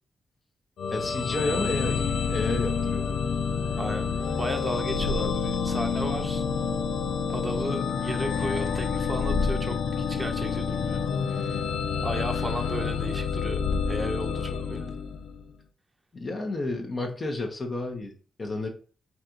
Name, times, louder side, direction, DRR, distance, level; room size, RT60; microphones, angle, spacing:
sound 1, 0.8-15.5, left 6 dB, 85° left, 0.5 m, -28 dB
voice 1, 0.9-2.0 2.3-3.1 16.1-18.1 18.4-18.7, left 2 dB, 45° left, 1 dB, 1.2 m, -31 dB
voice 2, 3.8-6.4 7.3-11.0 11.3-11.7 12.0-15.0, right 1 dB, 25° right, 4 dB, 0.8 m, -35 dB
4.2 x 2.6 x 4.6 m, 0.40 s
cardioid pair, 55°, 0 cm